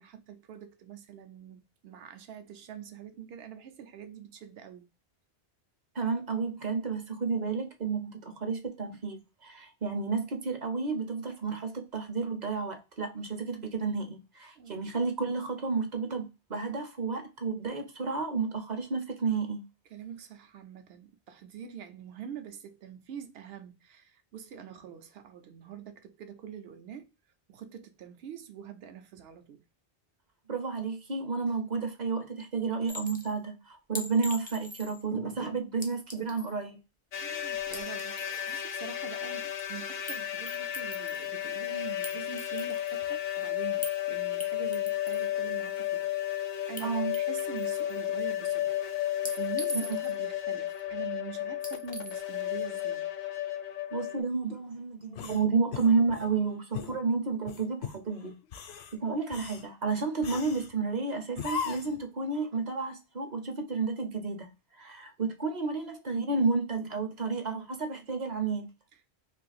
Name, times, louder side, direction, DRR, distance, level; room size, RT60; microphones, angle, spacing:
voice 1, 0.0-4.9 14.6-14.8 19.9-27.1 27.5-29.6 37.1-48.8 49.1-53.1, right 8 dB, 80° right, 0.8 m, -45 dB
voice 2, 5.9-19.6 30.5-36.8 46.8-47.2 49.7-50.0 53.9-58.4 58.9-68.7, right 4 dB, 50° right, 0.7 m, -31 dB
Chink clink, 32.9-33.3 34.0-35.0 35.8-36.6 37.6-38.6 40.1-40.2 40.5-41.3 42.0-43.0 43.8-44.0 44.4-45.3 46.8-46.9 47.1-48.0 49.3-50.2 51.6-52.2, left 1 dB, 15° left, 0.3 m, -41 dB
sound 1, 37.1-54.2, left 12 dB, 55° left, 0.6 m, -33 dB
sound 2, 55.1-56.3 56.7-57.0 57.5-58.0 58.4-58.9 59.3-59.7 60.2-60.7 61.4-62.0, left 6 dB, 85° left, 0.8 m, -38 dB
2.7 x 2.5 x 3.9 m
omnidirectional pair, 1.0 m